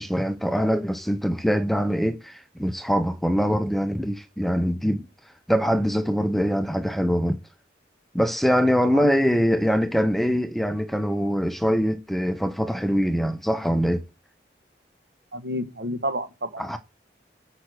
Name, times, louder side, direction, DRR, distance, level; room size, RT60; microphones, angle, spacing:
voice 1, 0.0-5.1 5.5-7.4 8.1-14.0 16.6-16.8, equal, ahead, 0.6 m, -23 dB
voice 2, 8.8-9.4 15.3-16.6, equal, 65° right, 1.2 m, -31 dB
8.0 x 5.8 x 6.2 m
head